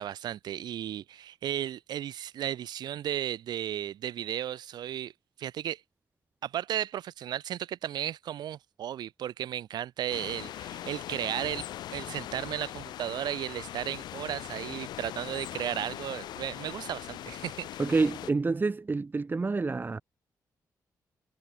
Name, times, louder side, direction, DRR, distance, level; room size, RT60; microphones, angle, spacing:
voice 1, 0.0-5.1 5.4-5.8 6.4-17.7, right 11 dB, 80° right, 7.7 m, -34 dB
sound 1, 10.1-18.3, left 13 dB, 85° left, 4.9 m, -41 dB
voice 2, 17.8-20.0, right 3 dB, 30° right, 1.0 m, -28 dB
cardioid pair, 75°, 7 cm